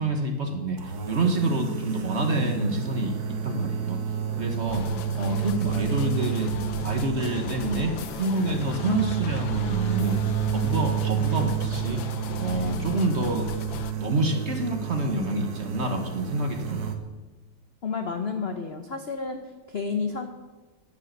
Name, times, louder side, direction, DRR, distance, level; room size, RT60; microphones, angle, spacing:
voice 1, 0.0-3.2 3.4-4.0 4.4-4.9 5.1-6.5 6.8-10.2 10.5-12.0 12.4-13.5 14.0-17.0, right 2 dB, 40° right, 4 dB, 1.3 m, -27 dB
sound 1, 0.8-17.0, right 9 dB, 55° right, 1.5 m, -30 dB
sound 2, 4.7-13.9, left 9 dB, 80° left, 1.4 m, -36 dB
voice 2, 17.8-19.4 19.7-20.3, left 5 dB, 55° left, 6 dB, 0.7 m, -30 dB
10.5 x 9.7 x 6.6 m, 1.2 s
omnidirectional pair, 2.1 m